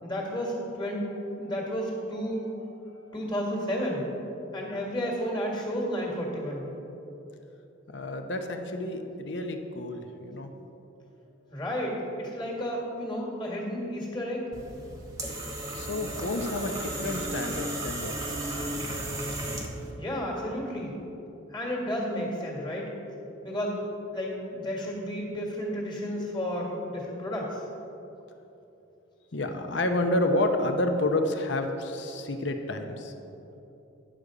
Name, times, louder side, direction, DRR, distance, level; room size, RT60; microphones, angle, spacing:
voice 1, 0.0-2.5 3.1-4.1 4.5-6.7 11.5-14.5 20.0-21.0 21.5-22.9 23.4-23.8 24.1-27.6, equal, 20° left, -2 dB, 1.7 m, -32 dB
voice 2, 7.9-10.5 15.7-18.6 29.3-33.1, left 1 dB, 60° left, 5 dB, 0.8 m, -30 dB
sound 1, 14.5-19.9, right 1 dB, 15° right, 1.1 m, -34 dB
10.0 x 6.7 x 4.9 m, 3.0 s
head